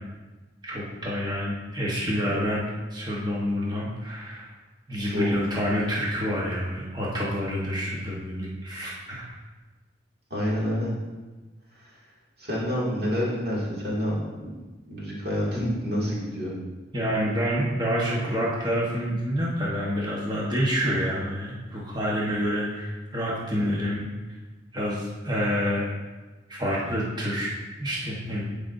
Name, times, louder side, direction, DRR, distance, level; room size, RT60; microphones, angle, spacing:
voice 1, 0.6-2.6 2.9-4.5 4.9-9.2 16.9-24.0 24.7-25.9 26.5-28.4, equal, 20° right, -5 dB, 1.1 m, -28 dB
voice 2, 10.3-10.9 11.8-11.9 12.4-14.5 14.9-16.5 23.6-23.7, equal, 55° right, -6 dB, 2.2 m, -28 dB
11.5 x 5.1 x 2.6 m, 1.2 s
head